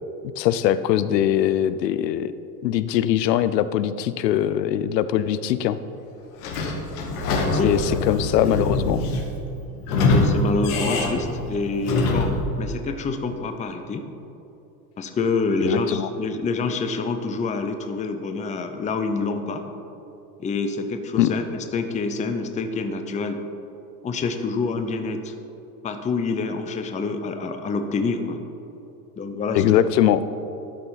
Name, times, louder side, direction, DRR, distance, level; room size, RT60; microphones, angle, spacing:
voice 1, 0.4-2.3 2.6-5.8 7.5-9.0 15.6-16.1 21.2-21.3 29.5-30.2, left 11 dB, 80° left, 14 dB, 0.6 m, -21 dB
Sliding door / Squeak, 6.4-12.5, left 2 dB, 60° left, 1.5 m, -24 dB
voice 2, 7.6-8.0 10.0-14.0 15.0-19.6 20.4-23.4 24.0-25.3 25.8-28.4 29.2-29.6, left 3 dB, 15° left, 7 dB, 0.6 m, -27 dB
12.0 x 5.5 x 4.1 m, 2.9 s
hypercardioid pair, 90°, 49 cm